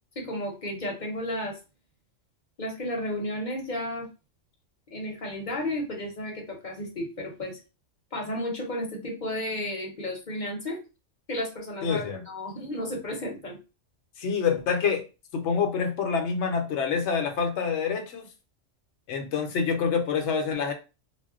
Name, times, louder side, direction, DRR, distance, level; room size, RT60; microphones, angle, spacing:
voice 1, 0.2-1.6 2.6-4.1 4.9-7.6 8.1-10.8 11.3-13.6, left 1 dB, 45° left, 0 dB, 0.8 m, -33 dB
voice 2, 11.8-12.2 14.2-15.0 15.3-18.3 19.1-20.7, left 6 dB, 70° left, 5 dB, 0.9 m, -26 dB
2.5 x 2.1 x 3.5 m, 0.31 s
omnidirectional pair, 1.3 m